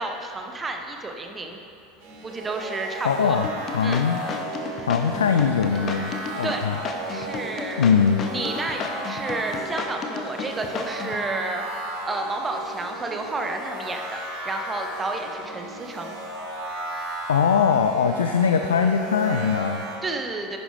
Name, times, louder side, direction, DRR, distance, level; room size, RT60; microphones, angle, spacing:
voice 1, 0.0-1.6 2.2-3.4 3.8-4.1 6.4-6.6 7.1-7.9 8.3-11.6 12.0-16.2 20.0-20.6, right 2 dB, 20° right, 4 dB, 1.0 m, -31 dB
sound 1, 2.0-20.0, right 1 dB, 55° right, 1.6 m, -35 dB
voice 2, 3.0-4.2 4.8-6.8 7.2-7.3 7.8-8.3 17.3-19.9, left 6 dB, 75° left, 6 dB, 0.4 m, -21 dB
sound 2, 3.4-11.2, left 5 dB, 35° left, 0.9 m, -33 dB
10.5 x 9.5 x 3.3 m, 2.7 s
figure-of-eight pair, 75°, 0 cm